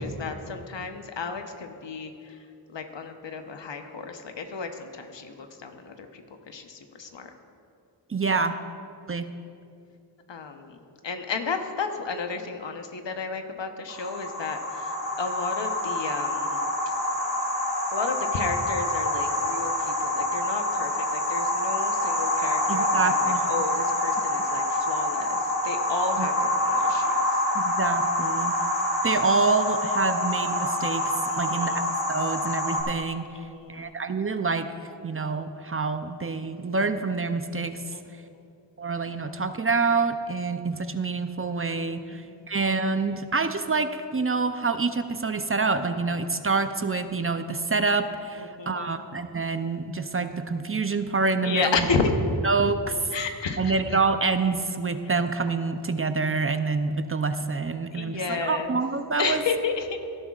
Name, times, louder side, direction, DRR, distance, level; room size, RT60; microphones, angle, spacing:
voice 1, 0.0-2.4 2.7-7.3 10.3-10.8 11.0-16.7 17.9-25.4 25.6-27.4 31.3-31.8 33.3-33.9 37.9-38.4 42.1-42.4 48.4-49.0 51.4-52.2 53.1-53.8 57.9-58.7 59.2-60.0, left 4 dB, 70° left, 6 dB, 1.0 m, -32 dB
voice 2, 8.1-8.6 9.1-9.3 22.7-23.6 26.2-26.3 27.5-28.5 29.0-31.8 32.1-33.3 33.7-34.7 35.0-37.8 38.8-51.9 52.4-52.8 53.6-59.4, right 4 dB, 30° right, 9 dB, 0.5 m, -27 dB
sound 1, 13.9-32.8, left 1 dB, 35° left, 2.8 m, -26 dB
17.5 x 11.0 x 2.4 m, 2.5 s
cardioid pair, 55°, 45 cm